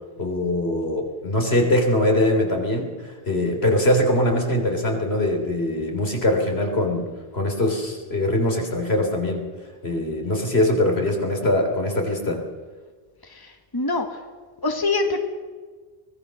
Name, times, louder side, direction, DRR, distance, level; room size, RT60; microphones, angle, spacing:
voice 1, 0.2-7.1 7.3-9.4 9.8-12.4, left 1 dB, 75° left, 2 dB, 3.9 m, -22 dB
voice 2, 13.2-14.2 14.6-15.2, left 3 dB, 20° left, 5 dB, 1.8 m, -25 dB
24.5 x 18.5 x 6.5 m, 1.5 s
omnidirectional pair, 1.1 m